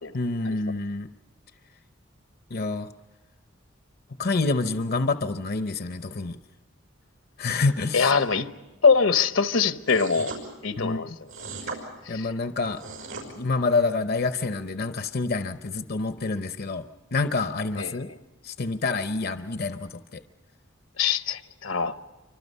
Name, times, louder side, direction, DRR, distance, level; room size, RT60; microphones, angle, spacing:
voice 1, 0.1-1.1 2.5-2.9 4.2-6.4 7.4-8.1 10.8-11.0 12.1-12.8 13.4-16.8 17.1-18.1 18.4-20.2, left 3 dB, 50° left, 9 dB, 0.7 m, -27 dB
voice 2, 7.9-8.5 8.8-10.3 10.6-11.1 12.1-12.3 17.8-18.0 21.0-21.9, left 5 dB, 75° left, 11 dB, 1.0 m, -23 dB
sound 1, 9.9-10.4 11.3-11.8 12.6-13.3, right 4 dB, 90° right, 5.8 m, -37 dB
28.0 x 25.0 x 5.5 m, 1.2 s
head